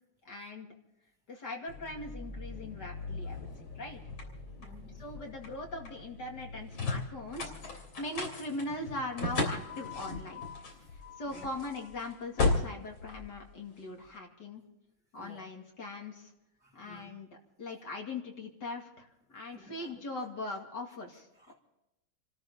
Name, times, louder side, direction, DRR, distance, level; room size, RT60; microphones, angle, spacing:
voice 1, 0.2-0.7 1.3-3.5 3.7-4.0 4.9-10.4 11.2-14.6 15.1-16.3 16.7-17.3 17.6-21.5, left 2 dB, 50° left, 1 dB, 2.9 m, -41 dB
sound 1, 1.7-14.0, left 3 dB, 70° left, 4.0 m, -37 dB
voice 2, 4.6-5.0 11.3-11.5 15.2-15.4 16.6-17.1 17.7-17.8 19.5-19.9 21.4-21.5, right 1 dB, 5° right, -4 dB, 2.3 m, -54 dB
28.5 x 13.5 x 3.7 m, 0.92 s
omnidirectional pair, 2.3 m